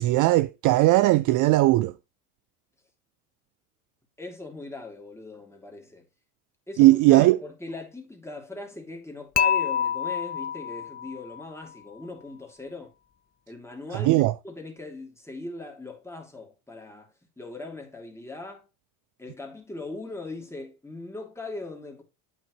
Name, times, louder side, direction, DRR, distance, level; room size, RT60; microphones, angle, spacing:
voice 1, 0.0-1.9 6.8-7.4 13.9-14.3, right 18 dB, 45° right, 0.4 m, -18 dB
voice 2, 4.2-6.0 6.7-12.9 13.5-18.7 19.2-22.0, left 2 dB, 5° left, 2.5 m, -40 dB
Dishes pots and pans / Chink clink, 9.4-11.5, left 8 dB, 20° left, 0.4 m, -27 dB
8.3 x 6.1 x 3.0 m
supercardioid pair, 90°, 44 cm